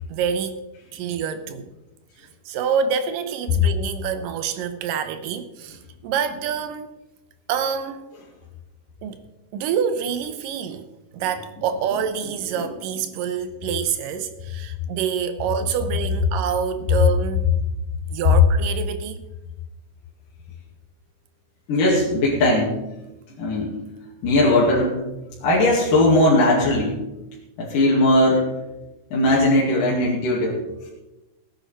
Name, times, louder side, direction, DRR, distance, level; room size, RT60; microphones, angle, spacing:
voice 1, 0.1-0.6 0.9-1.7 2.2-6.9 7.5-8.1 9.0-9.2 9.5-10.9 11.1-17.5 18.1-19.2, right 7 dB, 80° right, 10 dB, 2.6 m, -27 dB
voice 2, 21.7-22.8 23.4-23.8 24.2-24.9 25.4-27.0 27.6-28.5 29.1-30.9, left 1 dB, 75° left, -6 dB, 3.9 m, -19 dB
18.0 x 9.4 x 4.5 m, 1.0 s
omnidirectional pair, 3.8 m